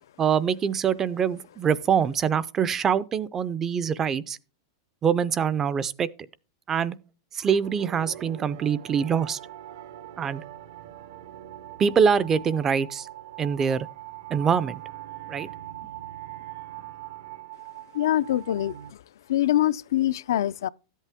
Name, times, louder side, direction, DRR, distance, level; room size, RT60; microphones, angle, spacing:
voice 1, 0.2-4.4 5.0-6.1 6.7-7.0 7.3-9.4 10.2-10.4 11.8-13.1 13.4-13.9 14.3-14.8 15.3-15.5, right 7 dB, 15° right, 0.4 m, -24 dB
sound 1, 7.6-18.9, right 13 dB, 75° right, 0.9 m, -42 dB
voice 2, 17.9-18.8 19.3-20.7, left 13 dB, 80° left, 0.4 m, -24 dB
13.0 x 8.3 x 3.5 m
supercardioid pair, 165°, 2 cm